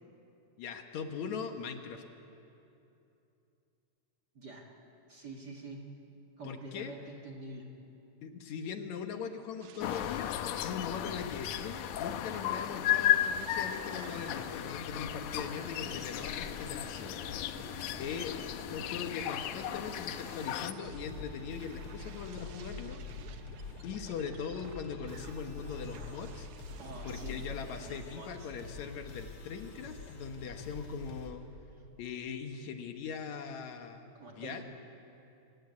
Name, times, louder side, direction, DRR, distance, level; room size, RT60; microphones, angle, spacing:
voice 1, 0.6-2.0 6.4-6.9 8.2-10.4 10.6-17.2 18.0-18.4 18.7-23.0 23.8-26.5 27.0-31.4 32.0-34.6, left 6 dB, 70° left, 6 dB, 2.4 m, -40 dB
voice 2, 5.1-5.8 6.4-7.7 17.5-18.1 26.8-28.6 34.1-34.6, right 2 dB, 35° right, 0 dB, 2.1 m, -47 dB
sound 1, 9.6-28.0, right 9 dB, 75° right, 2.3 m, -52 dB
sound 2, 9.8-20.7, left 11 dB, 90° left, 2.3 m, -34 dB
sound 3, 20.8-31.3, left 4 dB, 45° left, 3.2 m, -46 dB
27.5 x 16.0 x 9.6 m, 2.8 s
omnidirectional pair, 3.5 m